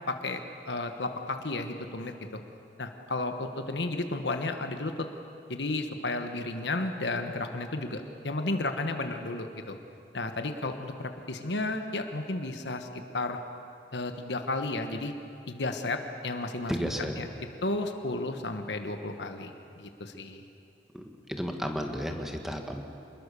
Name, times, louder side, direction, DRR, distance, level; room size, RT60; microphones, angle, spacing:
voice 1, 0.1-0.4 0.7-2.4 2.8-5.1 5.5-9.8 10.1-13.4 13.9-15.1 15.5-16.9 17.2-17.3 17.6-19.5 19.8-20.4, left 2 dB, 85° left, 6 dB, 1.4 m, -33 dB
voice 2, 16.7-17.1 20.9-22.8, equal, ahead, 3 dB, 1.7 m, -33 dB
26.0 x 21.0 x 6.9 m, 2.6 s
head